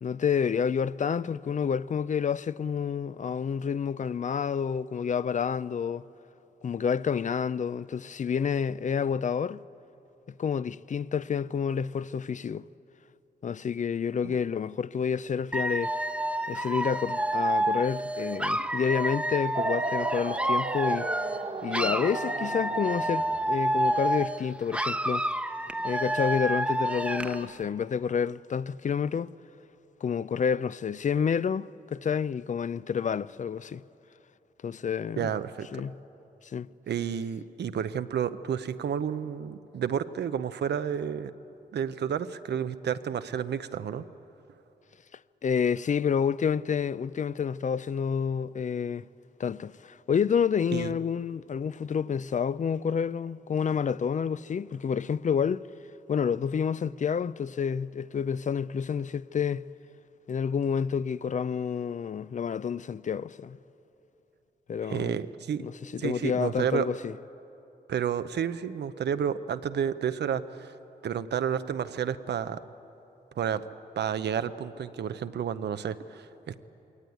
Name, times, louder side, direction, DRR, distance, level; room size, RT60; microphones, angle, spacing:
voice 1, 0.0-6.1 6.6-9.6 10.4-12.6 13.4-16.0 16.5-21.1 21.6-25.3 25.8-29.3 30.0-33.8 34.6-35.3 35.7-35.9 36.4-36.7 45.4-49.1 49.4-55.6 56.1-59.6 60.3-63.6 64.7-65.2 65.6-67.1, left 7 dB, 50° left, 0.4 m, -29 dB
Dog / Alarm, 15.5-21.4 21.7-24.4 24.7-27.4, right 1 dB, 5° right, 0.9 m, -29 dB
sound 1, 19.5-24.1, right 3 dB, 35° right, 1.3 m, -35 dB
voice 2, 35.2-35.8 36.9-41.3 41.7-44.0 50.7-51.0 64.8-65.6 66.0-66.9 67.9-70.7 71.0-72.6 73.4-73.7 74.0-76.6, right 8 dB, 90° right, 0.7 m, -31 dB
21.5 x 18.0 x 9.3 m
cardioid pair, 85°, 17 cm